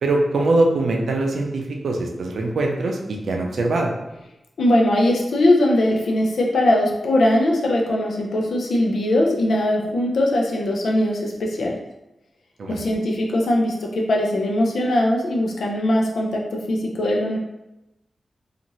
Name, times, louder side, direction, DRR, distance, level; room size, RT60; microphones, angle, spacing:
voice 1, 0.0-3.9 12.6-12.8, right 2 dB, 80° right, 1 dB, 0.4 m, -22 dB
voice 2, 4.6-11.8 12.7-16.4 16.7-17.4, left 1 dB, 85° left, -1 dB, 0.5 m, -20 dB
2.7 x 2.4 x 2.9 m, 0.91 s
wide cardioid pair, 180°, 0 cm